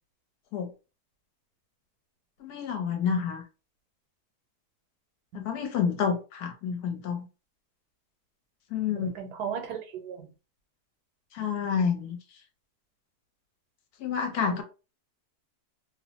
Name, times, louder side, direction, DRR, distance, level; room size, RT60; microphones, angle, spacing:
voice 1, 2.4-3.4 5.3-7.3 8.7-9.1 11.3-12.2 14.0-14.6, left 6 dB, 75° left, 1.2 m, -29 dB
voice 2, 8.9-10.2 14.5-14.6, right 7 dB, 90° right, 1.3 m, -36 dB
2.9 x 2.0 x 2.8 m
omnidirectional pair, 1.7 m